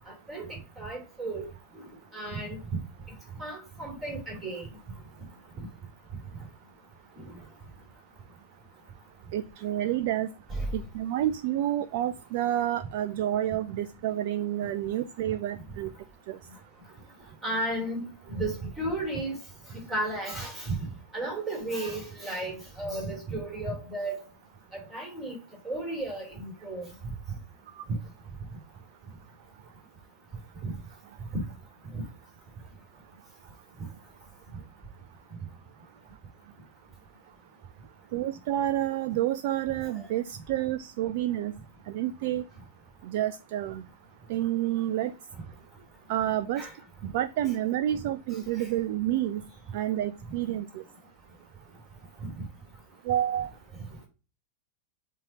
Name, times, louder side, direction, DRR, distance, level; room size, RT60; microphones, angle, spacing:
voice 1, 0.8-1.5 2.1-2.6 3.4-4.7 7.2-7.3 10.5-10.6 17.4-18.0 18.3-19.4 19.9-20.8 21.1-24.2 24.9-25.4 25.6-26.9 30.6-30.7 31.3-31.4 31.9-32.0 39.9-40.1 46.6-46.7 48.6-48.7, right 2 dB, 15° right, 0 dB, 3.4 m, -33 dB
voice 2, 9.3-10.3 10.7-15.9 16.3-16.4 27.8-27.9 38.1-41.6 41.9-42.5 43.0-43.8 44.3-45.1 46.1-46.7 47.0-49.5 49.7-50.8 53.0-53.5, right 12 dB, 50° right, 13 dB, 0.3 m, -29 dB
7.6 x 2.9 x 5.6 m, 0.32 s
figure-of-eight pair, 90°, 0 cm